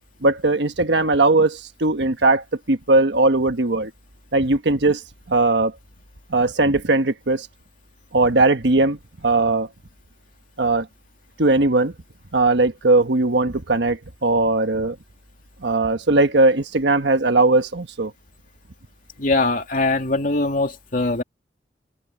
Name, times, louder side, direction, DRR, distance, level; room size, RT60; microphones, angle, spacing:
voice 1, 0.2-3.9 4.3-5.0 5.3-5.7 6.3-7.5 8.1-9.0 9.2-9.7 10.6-10.9 11.4-11.9 12.3-15.0 15.6-18.1, right 2 dB, 75° right, 1.3 m, -19 dB
voice 2, 19.2-21.2, left 2 dB, 50° left, 2.7 m, -21 dB
open air
head